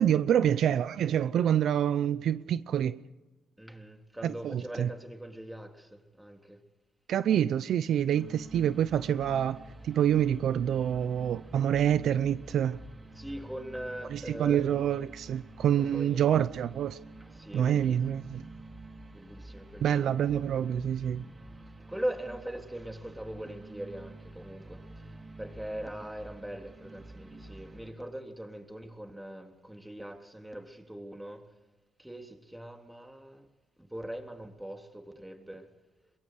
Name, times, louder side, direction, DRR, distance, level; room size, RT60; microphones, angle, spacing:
voice 1, 0.0-3.0 4.2-4.9 7.1-9.6 9.8-12.8 14.1-17.0 17.5-18.4 19.8-21.2, right 9 dB, 70° right, 0.7 m, -27 dB
voice 2, 3.6-6.6 13.1-14.6 15.8-16.4 17.2-18.0 19.1-20.1 21.1-21.4 21.9-31.5 32.0-33.5 33.8-35.7, right 1 dB, 5° right, 3.5 m, -41 dB
sound 1, 8.1-27.9, right 2 dB, 25° right, 4.1 m, -49 dB
23.0 x 22.5 x 6.6 m
cardioid pair, 90°, 0 cm